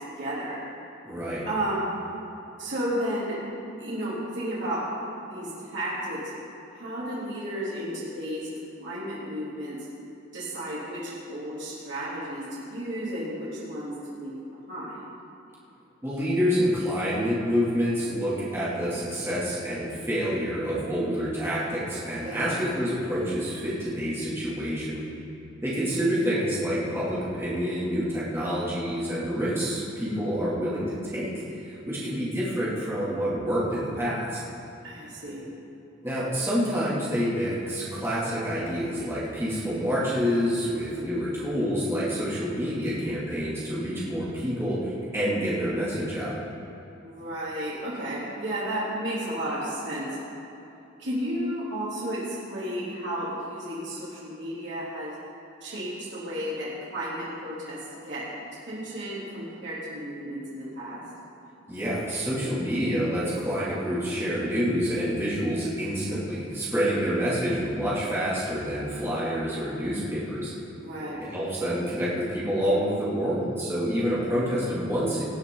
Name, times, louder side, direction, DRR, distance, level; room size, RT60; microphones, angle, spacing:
voice 1, 0.2-0.6 1.4-1.9 2.6-3.4 3.8-4.8 5.3-6.2 6.7-8.5 8.8-9.8 10.3-14.4 14.7-15.0 22.2-22.6 31.9-32.3 34.8-35.4 40.6-41.2 47.0-50.1 51.0-55.1 55.6-57.8 58.0-61.0 66.7-67.2 70.8-71.2, right 1 dB, 65° right, -9 dB, 3.3 m, -33 dB
voice 2, 1.1-1.5 16.0-25.0 25.6-31.3 31.6-34.4 36.0-46.3 61.7-70.5 71.3-75.2, equal, 15° right, -9 dB, 2.7 m, -27 dB
19.0 x 9.6 x 4.0 m, 2.8 s
head